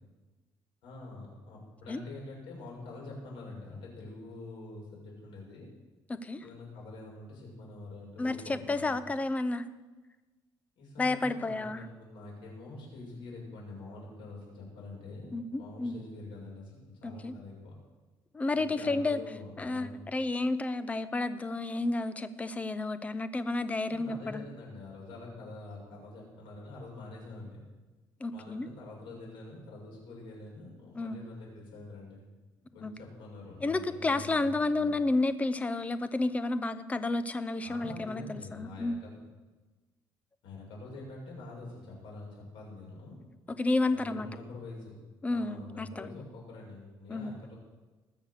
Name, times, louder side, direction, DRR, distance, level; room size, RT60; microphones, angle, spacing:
voice 1, 0.8-5.7 6.4-9.0 10.8-17.7 18.5-20.0 23.9-27.6 28.3-32.2 32.7-34.9 37.6-39.2 40.4-43.1 43.9-45.0 45.3-47.5, left 2 dB, 85° left, -3 dB, 6.1 m, -46 dB
voice 2, 6.1-6.4 8.2-9.7 11.0-11.8 15.3-16.0 17.0-17.3 18.3-19.2 19.6-24.5 28.2-28.7 31.0-31.2 32.8-32.9 33.6-38.9 43.5-44.3 45.2-46.2 47.1-47.3, left 2 dB, 15° left, 13 dB, 0.7 m, -31 dB
20.0 x 6.7 x 6.6 m, 1.2 s
cardioid pair, 140°, 8 cm